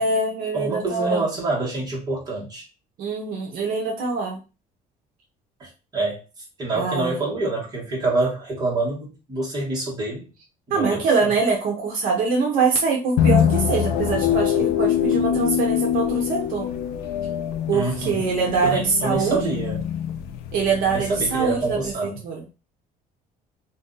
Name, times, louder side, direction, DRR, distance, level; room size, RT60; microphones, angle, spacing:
voice 1, 0.0-1.2 3.0-4.4 6.7-7.2 10.7-16.7 17.7-19.5 20.5-22.6, right 4 dB, 60° right, 0 dB, 0.7 m, -24 dB
voice 2, 0.5-2.6 5.6-6.2 6.6-10.3 10.7-11.3 17.7-18.3 18.6-19.9 20.9-22.2, right 2 dB, 25° right, -4 dB, 1.3 m, -26 dB
sound 1, 13.2-21.9, left 9 dB, 75° left, 0.4 m, -24 dB
2.6 x 2.3 x 3.8 m, 0.31 s
cardioid pair, 170°, 16 cm